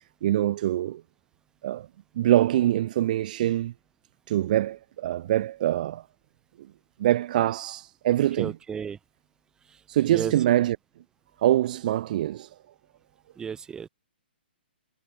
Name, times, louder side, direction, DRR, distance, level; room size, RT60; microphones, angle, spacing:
voice 1, 0.2-1.0 1.6-1.9 2.2-3.7 4.3-6.1 7.0-8.5 9.9-10.8 11.4-12.5, right 13 dB, 50° right, 2.0 m, -24 dB
voice 2, 8.4-9.0 9.6-10.3 13.4-13.9, right 7 dB, 10° right, 5.3 m, -34 dB
hypercardioid pair, 135°, 6 cm